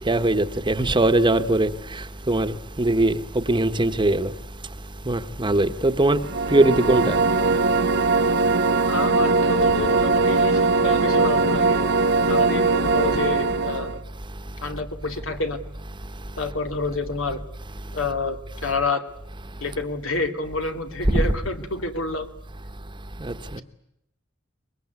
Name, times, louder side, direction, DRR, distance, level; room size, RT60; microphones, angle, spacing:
voice 1, 0.1-1.7 2.3-4.3 5.1-6.2 6.5-7.2 21.1-21.2 23.2-23.3, right 2 dB, 25° right, 1.1 m, -20 dB
sound 1, 6.2-14.0, right 3 dB, 60° right, 1.2 m, -20 dB
voice 2, 8.9-11.8 12.3-14.0 14.6-15.6 16.4-17.4 17.9-19.0 19.6-22.3, left 3 dB, 85° left, 2.6 m, -28 dB
24.0 x 21.5 x 9.6 m
head